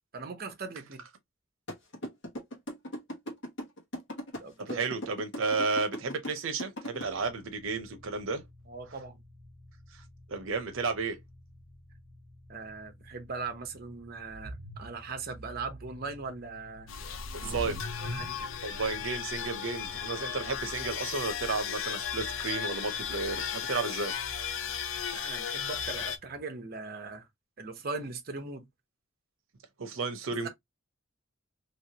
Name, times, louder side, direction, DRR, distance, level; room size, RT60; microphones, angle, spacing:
voice 1, 0.1-1.0 4.4-4.8 8.7-9.2 12.5-16.9 17.4-17.8 18.0-18.4 25.1-27.3 27.6-28.7 30.4-30.5, right 4 dB, 50° right, 0.9 m, -39 dB
sound 1, 1.7-7.0, equal, 65° left, 1.5 m, -38 dB
voice 2, 4.6-8.4 10.3-11.2 17.3-17.8 18.6-24.1 29.8-30.5, right 4 dB, 85° right, 0.7 m, -32 dB
sound 2, 7.0-26.4, equal, 5° right, 1.4 m, -49 dB
sound 3, 16.9-26.2, left 8 dB, 85° left, 0.6 m, -36 dB
3.2 x 3.0 x 2.8 m
head